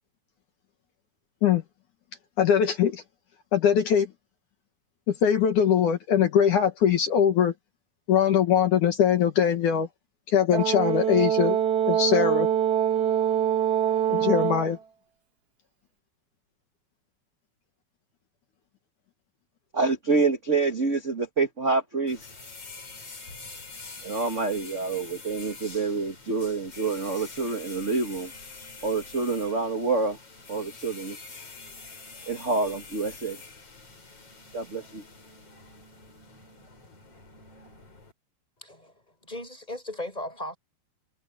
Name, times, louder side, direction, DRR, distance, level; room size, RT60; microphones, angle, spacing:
voice 1, 2.4-3.0 3.5-4.1 5.1-7.5 8.1-9.9 10.3-11.6 11.9-12.5 14.1-14.8, left 8 dB, 65° left, 3.0 m, -22 dB
Brass instrument, 10.5-14.7, right 9 dB, 60° right, 1.0 m, -24 dB
voice 2, 19.7-22.3 24.0-28.3 28.8-30.2 30.5-31.2 32.3-33.4 34.5-35.0, right 4 dB, 30° right, 1.5 m, -27 dB
sound 1, 22.1-38.1, left 3 dB, 45° left, 6.2 m, -45 dB
voice 3, 38.6-40.6, left 1 dB, 10° left, 6.5 m, -37 dB
omnidirectional pair, 4.0 m